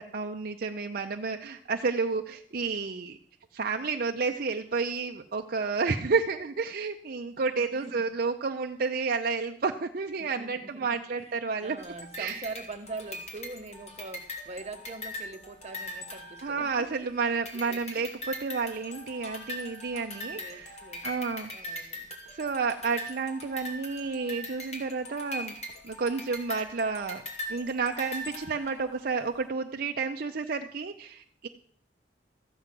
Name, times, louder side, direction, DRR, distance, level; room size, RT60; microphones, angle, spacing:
voice 1, 0.0-3.2 3.5-11.8 12.2-12.5 16.4-21.9 22.3-25.5 25.8-27.2 27.5-31.5, right 4 dB, 55° right, 4 dB, 0.6 m, -31 dB
voice 2, 7.5-8.1 10.2-16.9 17.5-17.8 20.3-21.1 21.5-22.1, right 3 dB, 35° right, 6 dB, 1.0 m, -43 dB
sound 1, 11.8-17.0 17.4-29.0, left 1 dB, 40° left, 2.8 m, -41 dB
14.0 x 9.3 x 6.0 m, 0.63 s
head